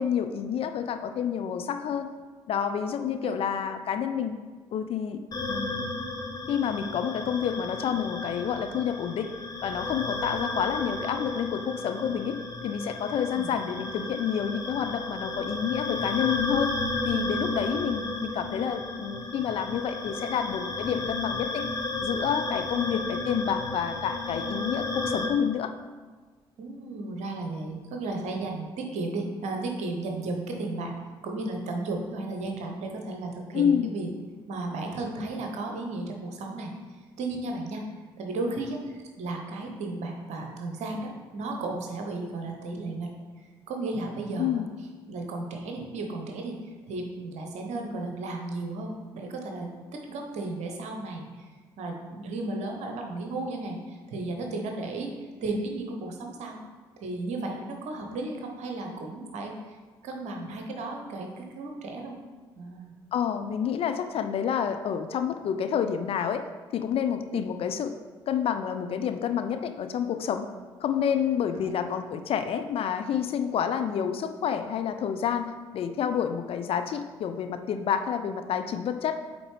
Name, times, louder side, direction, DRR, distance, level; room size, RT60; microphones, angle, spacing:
voice 1, 0.0-2.1 2.5-4.4 4.7-5.2 5.5-6.0 6.5-9.3 9.6-16.7 17.0-21.7 22.0-25.7 33.5-33.9 44.4-44.7 63.1-66.5 66.7-67.9 68.3-70.5 70.8-79.1, left 8 dB, 45° left, 8 dB, 0.4 m, -29 dB
voice 2, 3.0-3.3 13.3-13.5 26.6-30.9 31.2-34.1 34.5-36.7 37.2-37.8 38.2-43.1 43.7-44.6 45.1-51.5 51.8-55.1 55.4-56.6 57.0-59.8 60.0-62.2 62.6-62.9 71.5-71.7, right 2 dB, 55° right, 2 dB, 1.0 m, -34 dB
sound 1, 5.3-25.3, left 2 dB, 25° left, 1.0 m, -33 dB
8.3 x 3.6 x 3.3 m, 1.4 s
figure-of-eight pair, 45°, 14 cm